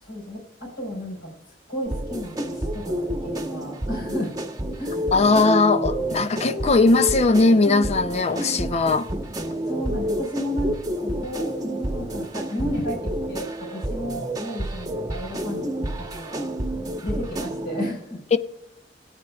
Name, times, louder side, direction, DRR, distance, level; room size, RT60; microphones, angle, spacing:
voice 1, 0.0-1.3 1.7-4.3 4.8-5.1 9.7-13.0 13.3-16.5 17.0-18.2, equal, 65° left, 4.1 m, -33 dB
sound 1, 1.9-17.9, right 1 dB, 20° right, 1.0 m, -29 dB
voice 2, 5.1-9.1 18.3-18.4, left 3 dB, 35° left, 0.5 m, -19 dB
21.0 x 9.0 x 2.3 m
head